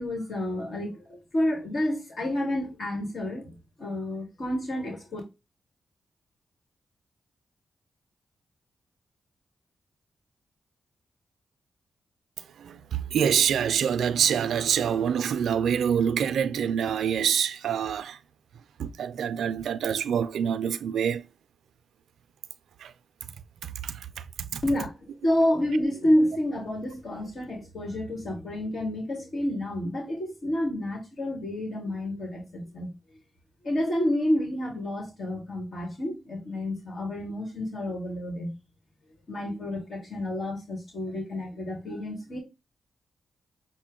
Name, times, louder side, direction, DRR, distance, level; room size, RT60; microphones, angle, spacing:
voice 1, 0.0-5.2 24.6-32.9 33.6-38.6 39.3-42.4, left 1 dB, 65° left, 1.6 m, -29 dB
voice 2, 12.4-18.2 18.8-21.2 22.8-22.9 23.6-24.1 24.5-24.6, right 8 dB, 85° right, 0.4 m, -26 dB
6.4 x 2.1 x 3.6 m
cardioid pair, 55°, 0 cm